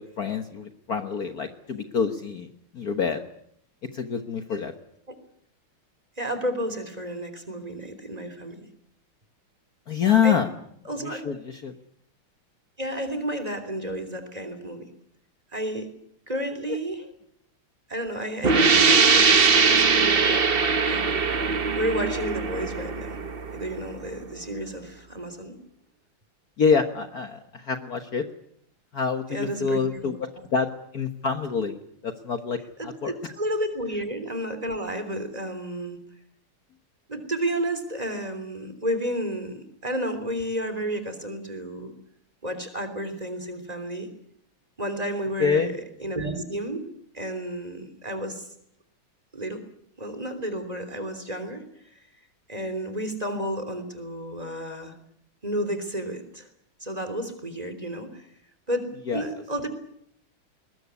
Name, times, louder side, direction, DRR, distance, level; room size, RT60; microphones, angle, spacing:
voice 1, 0.0-2.5 2.7-3.2 3.9-4.7 9.9-10.5 11.0-11.7 16.7-16.8 26.6-28.2 28.9-33.1 45.4-45.7 59.1-59.4, left 6 dB, 50° left, 7 dB, 1.7 m, -26 dB
voice 2, 6.2-8.6 10.2-10.4 10.8-11.3 12.8-14.8 15.5-15.9 16.3-17.0 17.9-20.5 20.8-21.1 21.7-23.2 23.5-25.6 29.3-30.1 33.0-36.0 37.1-41.9 42.4-44.1 44.8-46.9 47.1-48.5 49.3-49.6 50.0-51.6 52.5-54.9 55.4-56.5 56.8-58.3 58.7-59.7, right 1 dB, 15° right, 8 dB, 3.3 m, -31 dB
sound 1, 18.4-23.9, right 5 dB, 35° right, 0.9 m, -21 dB
21.0 x 20.5 x 9.6 m, 0.71 s
omnidirectional pair, 2.3 m